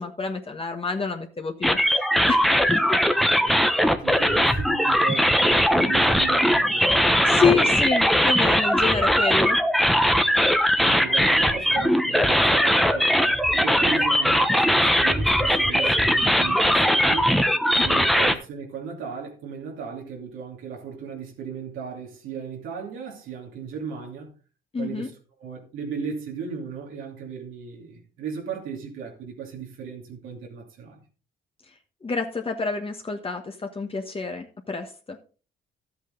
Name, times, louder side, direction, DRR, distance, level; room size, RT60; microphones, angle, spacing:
voice 1, 0.0-2.4 2.7-3.0 7.3-9.6 17.8-17.9 24.7-25.1 32.0-35.2, left 5 dB, 30° left, 1.3 m, -27 dB
sound 1, 1.6-18.3, equal, ahead, 1.0 m, -20 dB
voice 2, 4.0-7.4 10.8-17.4 17.7-24.3 24.8-25.1 25.4-31.0, right 6 dB, 90° right, 2.9 m, -36 dB
12.0 x 8.4 x 3.9 m
cardioid pair, 90°, 20 cm